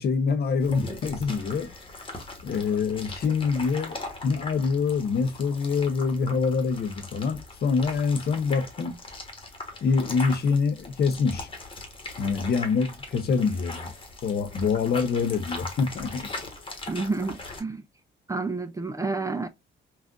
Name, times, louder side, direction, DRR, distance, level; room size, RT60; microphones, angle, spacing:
voice 1, 0.0-1.7 2.4-4.0 4.2-9.0 9.8-11.5 12.2-13.9 14.2-16.3, left 5 dB, 55° left, 0.7 m, -25 dB
sound 1, 0.6-17.6, left 2 dB, 25° left, 1.2 m, -40 dB
voice 2, 16.9-17.8 18.3-19.5, right 3 dB, 15° right, 0.5 m, -29 dB
3.6 x 2.4 x 2.4 m
cardioid pair, 90°, 20 cm